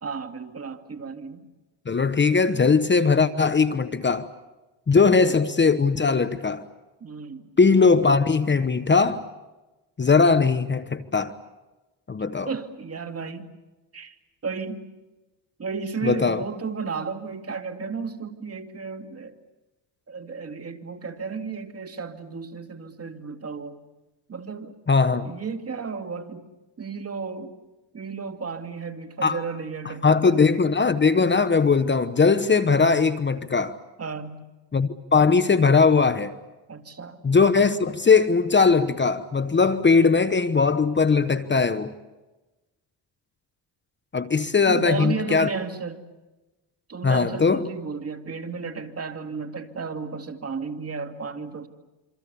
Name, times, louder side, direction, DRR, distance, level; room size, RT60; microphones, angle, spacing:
voice 1, 0.0-1.5 5.0-5.3 7.0-7.5 12.5-13.5 13.9-14.2 14.4-14.9 15.6-19.3 20.1-23.8 24.3-24.8 25.2-26.5 26.8-27.5 27.9-30.6 34.0-34.4 36.7-37.2 44.7-46.0 46.9-51.7, right 5 dB, 35° right, 2.4 m, -33 dB
voice 2, 1.9-4.3 4.9-6.7 7.6-9.2 10.0-11.3 12.1-12.5 16.0-16.4 24.9-25.3 29.2-29.4 30.0-33.8 34.7-36.3 37.2-41.9 44.1-45.5 47.0-47.7, left 4 dB, 25° left, 1.1 m, -20 dB
27.0 x 25.5 x 7.0 m
cardioid pair, 95°, 43 cm